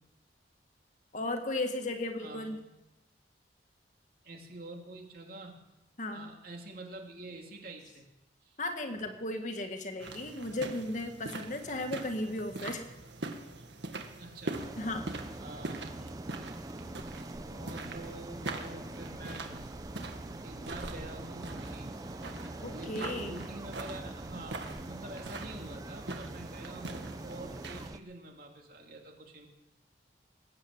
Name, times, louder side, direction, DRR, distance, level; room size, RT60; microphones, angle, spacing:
voice 1, 1.1-2.6 6.0-6.3 8.6-12.9 14.8-15.1 22.6-23.4, left 2 dB, 45° left, 5 dB, 1.7 m, -35 dB
voice 2, 2.2-2.6 4.2-5.6 6.1-8.1 8.4-8.6 14.2-14.6 15.4-16.3 17.4-19.6 20.4-21.9 22.7-29.5, right 2 dB, 55° right, 1 dB, 3.1 m, -47 dB
sound 1, 10.0-27.9, right 2 dB, 85° right, 1.7 m, -43 dB
sound 2, 14.5-28.0, right 2 dB, 20° right, 0.5 m, -44 dB
19.5 x 8.8 x 8.0 m, 0.95 s
head